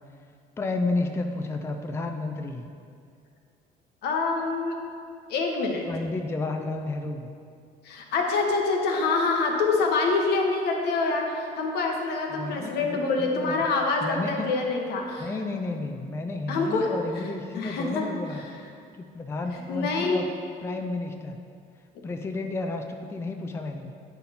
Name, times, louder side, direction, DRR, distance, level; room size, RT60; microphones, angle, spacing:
voice 1, 0.6-2.7 5.9-7.3 12.3-13.6 14.0-14.5 15.2-18.4 19.0-20.3 20.6-21.4 22.0-23.9, left 3 dB, 15° left, 4 dB, 0.4 m, -31 dB
voice 2, 4.0-4.8 5.3-5.8 7.8-15.3 16.5-16.9 17.5-18.1 19.5-20.2, left 3 dB, 75° left, 1 dB, 1.0 m, -26 dB
8.0 x 4.1 x 4.1 m, 2.4 s
cardioid pair, 110°, 17 cm